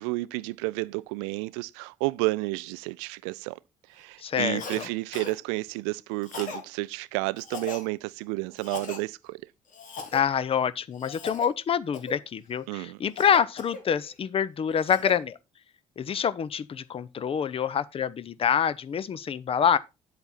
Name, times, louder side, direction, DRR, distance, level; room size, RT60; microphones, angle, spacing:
voice 1, 0.0-3.6 3.9-9.4 12.7-13.0, right 23 dB, 65° right, 0.4 m, -31 dB
voice 2, 4.2-4.8 10.1-15.4 16.0-19.8, left 8 dB, 35° left, 0.6 m, -26 dB
Cough, 4.6-4.9 5.1-5.4 6.2-6.6 7.4-7.9 8.6-9.0 9.7-10.2 10.9-11.5 11.9-12.2 13.2-14.1 14.6-15.2, left 4 dB, 55° left, 2.1 m, -38 dB
8.9 x 8.0 x 4.1 m
figure-of-eight pair, 50°, 16 cm